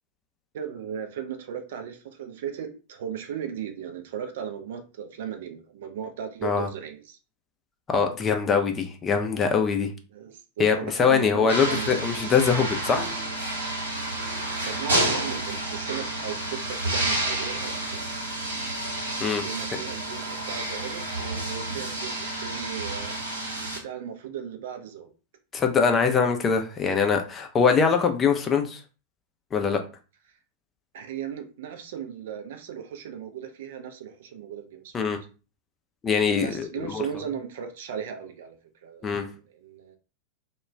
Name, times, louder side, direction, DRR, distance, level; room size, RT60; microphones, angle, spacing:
voice 1, 0.5-7.2 10.1-12.0 14.6-18.1 19.4-23.5 23.8-25.1 30.9-34.9 36.4-38.6 38.8-40.0, right 8 dB, 55° right, 6 dB, 0.4 m, -37 dB
voice 2, 7.9-9.9 10.6-13.1 19.2-19.4 25.5-28.8 29.5-29.8 34.9-35.2 36.0-37.0 39.0-39.3, left 6 dB, 20° left, 5 dB, 0.4 m, -23 dB
sound 1, 11.5-23.8, right 1 dB, 75° right, 0.9 m, -30 dB
2.3 x 2.2 x 3.0 m, 0.34 s
figure-of-eight pair, 90°, 0 cm